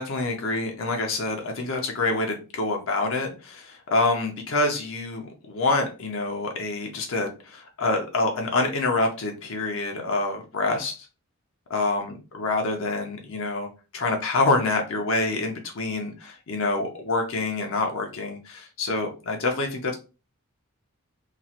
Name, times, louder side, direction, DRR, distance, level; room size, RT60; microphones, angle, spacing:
voice 1, 0.0-11.1 11.7-13.7 13.9-19.9, left 2 dB, 60° left, 2 dB, 0.6 m, -26 dB
3.0 x 2.3 x 2.8 m, 0.32 s
head